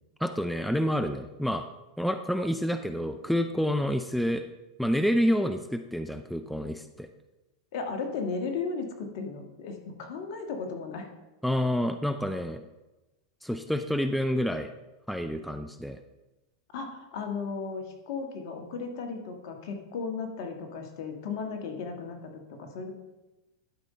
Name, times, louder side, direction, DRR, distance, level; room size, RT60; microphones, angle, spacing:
voice 1, 0.2-1.7 2.0-4.4 4.8-7.1 11.4-12.6 13.4-14.7 15.1-16.0, equal, ahead, 8 dB, 0.5 m, -28 dB
voice 2, 7.7-11.1 16.7-22.3 22.6-22.9, left 4 dB, 60° left, 4 dB, 1.7 m, -35 dB
11.5 x 5.3 x 4.3 m, 1.1 s
hypercardioid pair, 110°, 3 cm